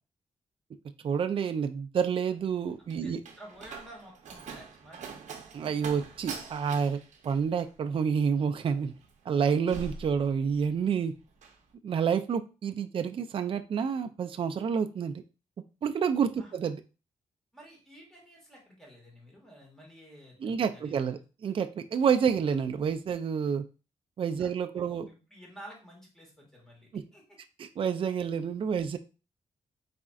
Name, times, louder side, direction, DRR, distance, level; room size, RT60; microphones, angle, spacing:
voice 1, 1.0-3.2 5.5-7.0 7.2-8.9 9.3-11.1 11.8-15.2 15.8-16.8 20.4-23.6 24.2-25.1 26.9-27.0 27.6-29.0, right 7 dB, 45° right, 7 dB, 0.4 m, -29 dB
Slam, 2.4-10.8 11.1-11.6, right 4 dB, 85° right, 0.7 m, -45 dB
voice 2, 3.0-5.2 16.4-16.5 17.5-21.2 24.4-27.2, right 1 dB, 5° left, -2 dB, 1.9 m, -51 dB
4.2 x 3.7 x 2.4 m, 0.32 s
cardioid pair, 105°, 12 cm